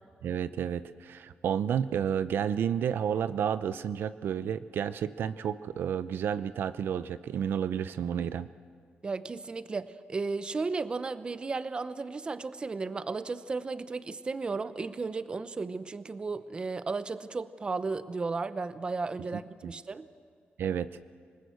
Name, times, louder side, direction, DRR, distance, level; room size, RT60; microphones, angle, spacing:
voice 1, 0.2-8.5 19.6-19.7 20.6-20.9, right 8 dB, 70° right, 14 dB, 0.5 m, -31 dB
voice 2, 9.0-20.1, right 4 dB, 25° right, 13 dB, 0.7 m, -34 dB
27.0 x 19.5 x 8.0 m, 2.1 s
wide cardioid pair, 145°, 4 cm